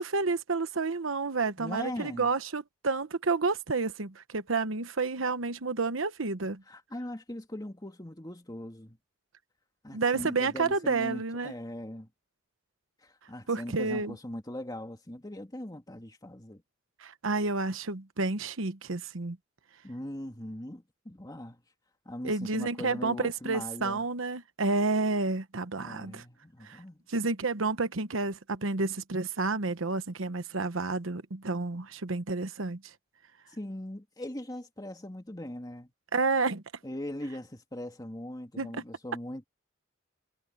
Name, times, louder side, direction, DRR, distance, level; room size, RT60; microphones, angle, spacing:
voice 1, 0.0-6.6 9.9-11.5 13.5-14.2 17.0-19.4 22.2-26.2 26.6-26.8 27.1-32.8 36.1-36.6 38.6-38.8, right 3 dB, 80° right, 1.1 m, -30 dB
voice 2, 1.6-2.3 6.7-9.0 9.8-12.1 13.0-16.6 19.8-21.6 22.1-24.1 25.8-27.0 33.5-35.9 36.8-39.4, left 1 dB, 20° left, 2.4 m, -40 dB
head